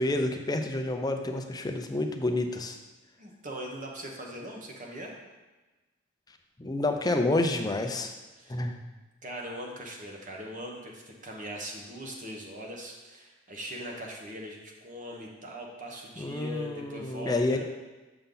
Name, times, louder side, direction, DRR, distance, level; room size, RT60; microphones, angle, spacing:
voice 1, 0.0-2.8 6.6-8.1 8.5-8.8 16.2-17.6, left 2 dB, 20° left, 5 dB, 0.5 m, -29 dB
voice 2, 3.2-5.2 8.3-8.7 9.2-17.6, equal, 40° right, 0 dB, 1.2 m, -40 dB
6.9 x 5.5 x 3.9 m, 1.2 s
head